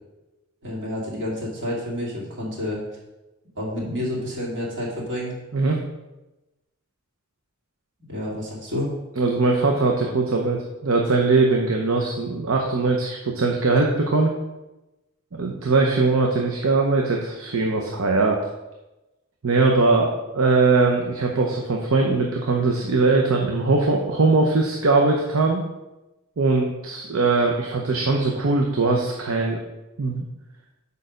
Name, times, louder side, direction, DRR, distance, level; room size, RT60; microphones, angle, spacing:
voice 1, 0.6-2.8 3.6-5.3 8.1-8.9, left 1 dB, 60° right, -4 dB, 2.6 m, -29 dB
voice 2, 9.2-14.3 15.3-18.4 19.4-25.6 26.4-29.6 30.0-30.3, right 3 dB, 75° right, 1 dB, 0.8 m, -21 dB
6.5 x 5.4 x 5.1 m, 1.0 s
head